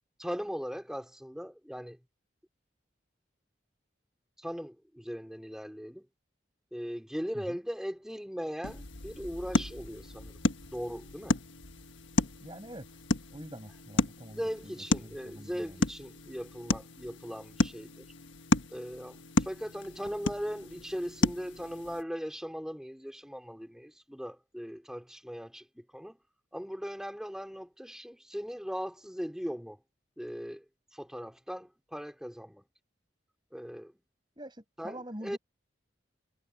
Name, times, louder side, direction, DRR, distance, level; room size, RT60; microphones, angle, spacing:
voice 1, 0.2-2.0 4.4-6.1 6.7-10.5 10.7-11.4 14.1-18.1 18.7-26.2 26.5-29.8 30.2-30.6 30.9-32.7 33.5-33.9 34.8-35.4, equal, 5° right, 4.1 m, -39 dB
sound 1, 8.6-22.0, left 2 dB, 85° left, 1.5 m, -33 dB
voice 2, 12.4-13.0 13.3-15.8 34.4-35.4, right 1 dB, 25° right, 7.5 m, -45 dB
head